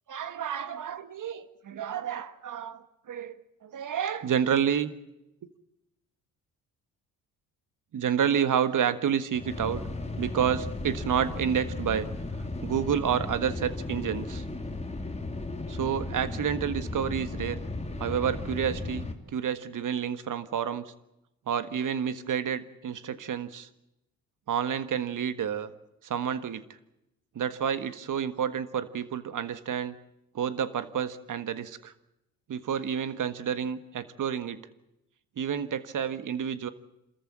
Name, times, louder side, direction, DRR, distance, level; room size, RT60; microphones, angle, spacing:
voice 1, 0.1-4.9 7.9-9.8 10.1-12.1 12.6-14.4 15.7-17.6 18.0-20.9 21.5-23.7 24.5-25.7 26.0-26.6 27.3-29.9 30.3-31.9 32.5-34.6 35.4-36.7, right 8 dB, 50° right, 13 dB, 1.6 m, -29 dB
sound 1, 9.3-19.1, left 2 dB, 15° left, 2.7 m, -35 dB
27.0 x 14.0 x 8.7 m, 0.88 s
hypercardioid pair, 55°, 41 cm